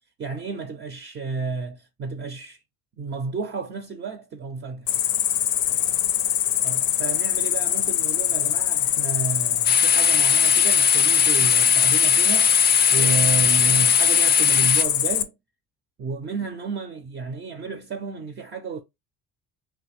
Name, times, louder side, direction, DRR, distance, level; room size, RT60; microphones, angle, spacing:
voice 1, 0.2-2.6 3.0-4.9 6.6-12.5 12.9-15.3 16.0-18.8, right 4 dB, 35° right, 0.5 m, -31 dB
Cricket, 4.9-15.2, left 11 dB, 80° left, 0.6 m, -23 dB
TV-on, 9.6-14.8, left 7 dB, 30° left, 0.4 m, -19 dB
2.9 x 2.5 x 3.2 m
cardioid pair, 110°, 33 cm